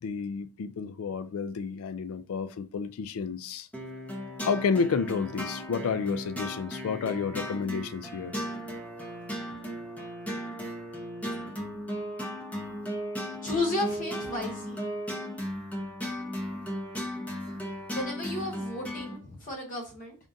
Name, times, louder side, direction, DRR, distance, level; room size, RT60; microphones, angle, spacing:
voice 1, 0.0-3.7 4.4-8.3, left 5 dB, 75° left, 0.3 m, -30 dB
sound 1, 3.7-19.2, equal, 5° left, 0.7 m, -36 dB
voice 2, 13.4-14.9 17.9-20.2, left 2 dB, 40° left, 0.8 m, -33 dB
3.5 x 2.6 x 3.8 m
head